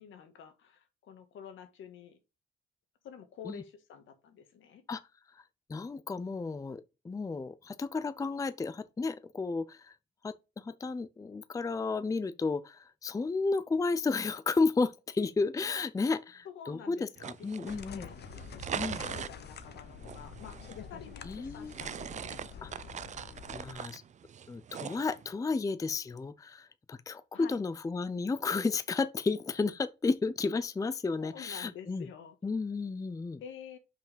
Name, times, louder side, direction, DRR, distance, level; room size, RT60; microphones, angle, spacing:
voice 1, 0.0-2.2 3.0-4.8 16.4-18.2 18.7-20.6 20.9-22.4 27.3-27.6 31.2-32.4 33.4-33.8, left 7 dB, 75° left, 1.7 m, -49 dB
voice 2, 5.7-9.8 10.2-18.1 18.7-19.0 21.3-21.7 22.6-22.7 23.5-24.0 24.5-32.1 32.4-33.4, left 4 dB, 15° left, 0.5 m, -32 dB
sound 1, 17.2-25.3, right 8 dB, 35° right, 0.4 m, -42 dB
sound 2, 17.7-23.7, left 8 dB, 55° left, 0.9 m, -47 dB
5.8 x 4.9 x 5.1 m
cardioid pair, 90°, 20 cm